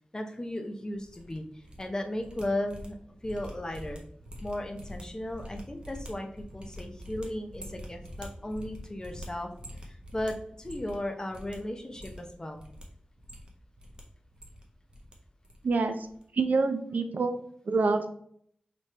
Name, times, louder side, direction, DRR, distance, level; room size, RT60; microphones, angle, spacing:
voice 1, 0.1-3.0 3.2-4.0 4.4-9.5 9.8-12.6, left 1 dB, 25° left, 4 dB, 0.7 m, -36 dB
sound 1, 0.9-1.8 2.1-11.0 11.3-11.6 11.9-12.8 13.2-14.0 14.3-15.1 15.4-15.7 16.0-16.2, equal, 35° right, 0.9 m, -45 dB
voice 2, 15.6-16.1 16.3-17.4 17.7-18.1, right 3 dB, 75° right, 8 dB, 0.5 m, -26 dB
5.0 x 3.0 x 3.1 m, 0.64 s
wide cardioid pair, 75°, 3 cm